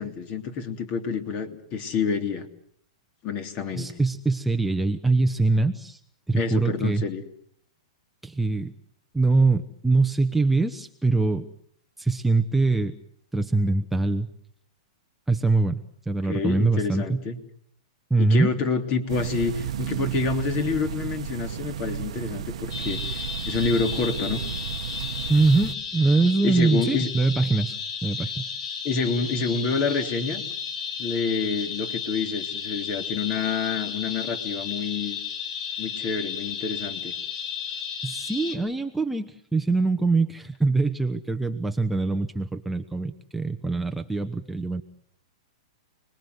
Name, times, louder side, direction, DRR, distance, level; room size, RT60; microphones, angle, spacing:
voice 1, 0.0-2.5 3.2-3.9 6.3-7.2 16.3-17.4 18.2-24.4 26.4-27.1 28.8-30.4 31.0-35.2 35.8-37.1, left 5 dB, 35° left, 9 dB, 3.1 m, -28 dB
voice 2, 3.8-6.0 6.3-7.0 8.2-8.7 9.1-11.5 12.0-12.9 13.3-14.3 15.3-17.2 18.1-18.5 25.3-28.5 38.0-44.8, right 3 dB, 5° right, 4 dB, 1.0 m, -23 dB
sound 1, 19.1-25.7, right 10 dB, 75° right, 1.1 m, -33 dB
sound 2, 22.7-38.6, left 6 dB, 65° left, 4.6 m, -33 dB
29.5 x 21.0 x 7.9 m, 0.66 s
hypercardioid pair, 140°, 3 cm